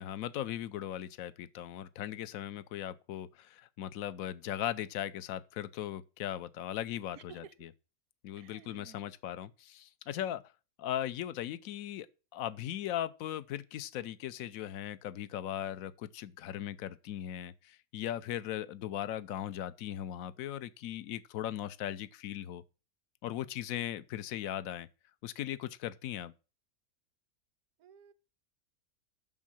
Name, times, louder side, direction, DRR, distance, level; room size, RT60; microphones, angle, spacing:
voice 1, 0.0-7.7 8.2-10.4 10.8-12.1 12.3-22.6 23.2-24.9 25.2-26.3, left 11 dB, 75° left, 1.1 m, -38 dB
voice 2, 7.1-7.5 8.4-9.0 27.8-28.1, right 8 dB, 75° right, 1.1 m, -54 dB
7.5 x 6.2 x 7.5 m
omnidirectional pair, 1.5 m